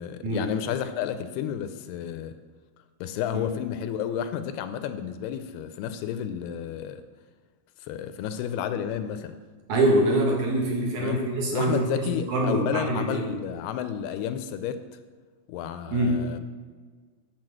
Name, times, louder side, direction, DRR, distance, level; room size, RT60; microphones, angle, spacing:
voice 1, 0.0-2.3 3.0-7.0 7.8-9.4 11.0-11.3 11.5-15.0 15.5-16.4, left 9 dB, 80° left, 10 dB, 2.5 m, -31 dB
voice 2, 9.7-13.3 15.9-16.2, right 1 dB, 55° right, -1 dB, 2.5 m, -24 dB
9.7 x 4.4 x 7.6 m, 1.5 s
omnidirectional pair, 4.7 m